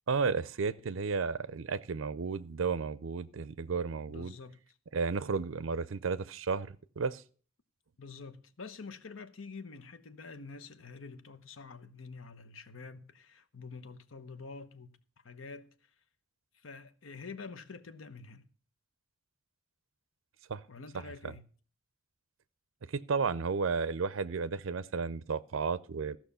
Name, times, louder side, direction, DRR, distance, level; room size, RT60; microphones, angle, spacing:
voice 1, 0.1-4.3 4.9-7.2 20.5-20.6 21.2-21.3 22.9-26.2, right 5 dB, 70° right, 0.5 m, -33 dB
voice 2, 4.1-4.8 8.0-15.0 15.2-15.9 16.5-18.5 20.7-21.4, left 4 dB, 75° left, 0.9 m, -47 dB
14.0 x 6.0 x 6.8 m
head